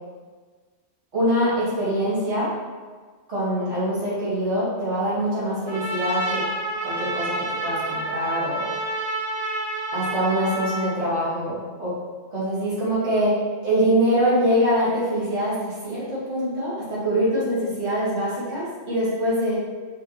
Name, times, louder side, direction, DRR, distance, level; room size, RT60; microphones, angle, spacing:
voice 1, 1.1-2.5 3.3-6.4 6.8-8.7 9.9-12.0 12.3-19.6, equal, 75° right, -10 dB, 2.0 m, -24 dB
Trumpet, 5.7-10.9, right 1 dB, 30° right, 0.6 m, -28 dB
4.9 x 3.1 x 2.9 m, 1.4 s
omnidirectional pair, 1.2 m